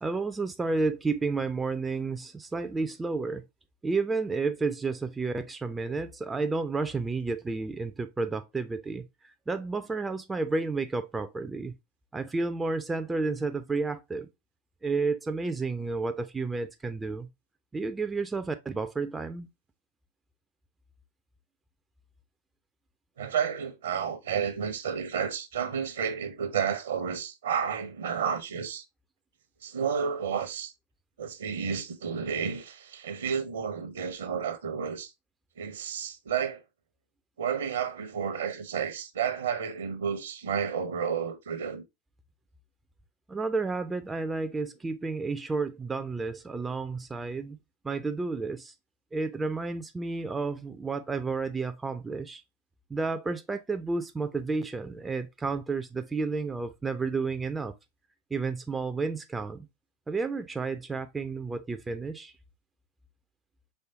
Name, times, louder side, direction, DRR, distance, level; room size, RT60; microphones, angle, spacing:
voice 1, 0.0-3.4 3.8-11.8 12.1-14.3 14.8-17.3 17.7-19.5 43.3-47.6 47.8-48.7 49.1-52.4 52.9-57.7 58.3-59.7 60.1-62.3, right 3 dB, 10° right, 0.3 m, -31 dB
voice 2, 23.2-28.9 29.6-30.7 31.2-35.1 35.6-36.6 37.4-41.8, right 7 dB, 65° right, 0.7 m, -31 dB
4.4 x 3.2 x 2.6 m
figure-of-eight pair, 90°, 0 cm